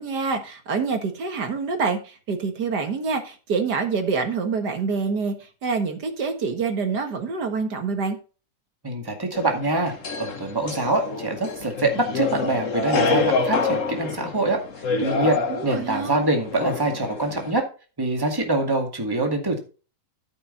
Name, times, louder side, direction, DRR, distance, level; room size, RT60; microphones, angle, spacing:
voice 1, 0.0-5.3 5.6-8.2 15.5-16.2, right 4 dB, 80° right, 5 dB, 2.2 m, -26 dB
voice 2, 8.8-14.6 15.0-17.6 18.0-19.6, right 2 dB, 15° right, 3 dB, 2.1 m, -24 dB
sound 1, 9.3-17.5, left 4 dB, 50° left, 1.6 m, -27 dB
13.5 x 5.5 x 4.0 m, 0.34 s
omnidirectional pair, 1.8 m